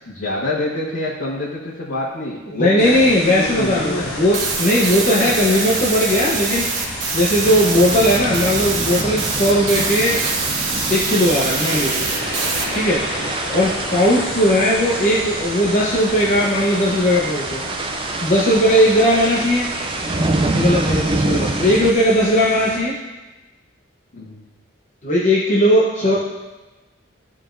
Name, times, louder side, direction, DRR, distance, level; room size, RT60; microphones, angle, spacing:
voice 1, 0.1-4.3 5.1-5.7 13.1-13.3 24.1-24.4 26.0-26.2, left 2 dB, 90° left, -7 dB, 1.3 m, -27 dB
voice 2, 2.5-10.2 10.9-12.1 12.7-13.0 13.5-17.6 18.2-19.7 20.5-23.0 25.0-26.2, equal, 35° left, -5 dB, 0.8 m, -18 dB
sound 1, 2.8-22.8, left 1 dB, 55° left, 1.6 m, -31 dB
sound 2, 4.3-12.7, right 5 dB, 65° right, 1.0 m, -25 dB
sound 3, 7.4-21.9, right 2 dB, 25° right, 0.4 m, -26 dB
14.5 x 4.8 x 2.6 m, 1.1 s
head